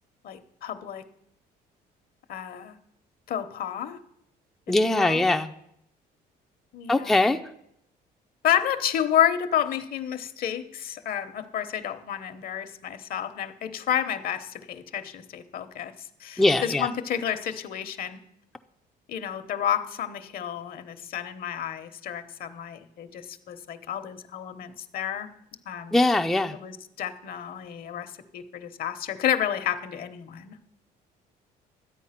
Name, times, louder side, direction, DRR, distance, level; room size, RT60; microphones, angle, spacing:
voice 1, 0.2-1.0 2.3-2.8 3.3-4.0 4.8-5.2 6.7-7.3 8.4-18.2 19.1-25.3 25.7-26.0 26.5-30.5, left 10 dB, 60° left, 10 dB, 1.0 m, -30 dB
voice 2, 4.7-5.5 6.9-7.4 16.4-16.9 25.9-26.5, left 2 dB, ahead, 5 dB, 0.4 m, -21 dB
12.0 x 8.3 x 5.8 m, 0.78 s
cardioid pair, 110°, 17 cm